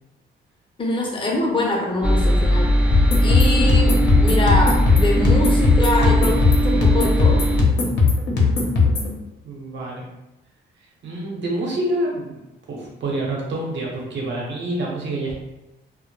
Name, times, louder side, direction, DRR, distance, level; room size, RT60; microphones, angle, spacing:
voice 1, 0.8-2.7 3.2-7.4, left 2 dB, 25° left, -1 dB, 0.6 m, -24 dB
sound 1, 2.0-7.6, equal, 5° right, 0.3 m, -19 dB
sound 2, 2.9-9.1, left 4 dB, 60° left, 0.7 m, -18 dB
voice 2, 9.4-10.0 11.0-12.4 12.7-15.4, right 1 dB, 65° right, -3 dB, 0.9 m, -27 dB
2.1 x 2.1 x 2.9 m, 0.97 s
cardioid pair, 90°, 20 cm